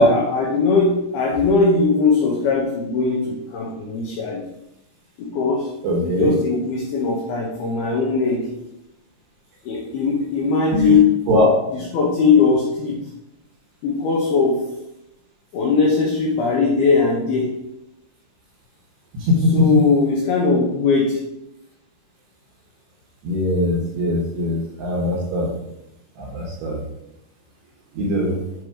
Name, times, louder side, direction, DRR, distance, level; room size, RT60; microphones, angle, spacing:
voice 1, 0.0-4.5 5.2-5.7 6.0-8.5 9.6-11.2 11.7-13.0 13.8-14.7 15.5-17.5 19.5-21.2, left 4 dB, 85° left, -2 dB, 2.2 m, -19 dB
voice 2, 5.8-6.3 10.7-11.0 11.3-11.5 19.2-19.7 23.2-25.5 26.2-26.8 28.0-28.3, left 1 dB, 75° right, -3 dB, 2.5 m, -20 dB
7.8 x 2.9 x 4.8 m, 0.85 s
omnidirectional pair, 5.7 m